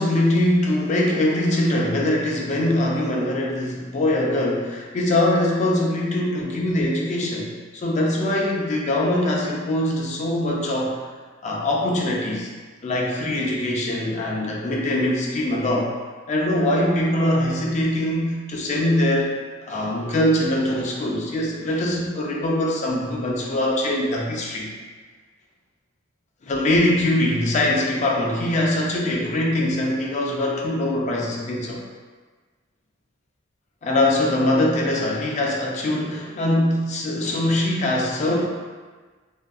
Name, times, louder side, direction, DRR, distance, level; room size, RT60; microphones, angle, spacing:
voice 1, 0.0-11.0 11.4-12.5 12.8-15.9 16.3-19.3 19.7-24.7 26.4-31.8 33.8-38.4, left 1 dB, 35° left, -2 dB, 0.3 m, -22 dB
2.6 x 2.5 x 2.3 m, 1.4 s
head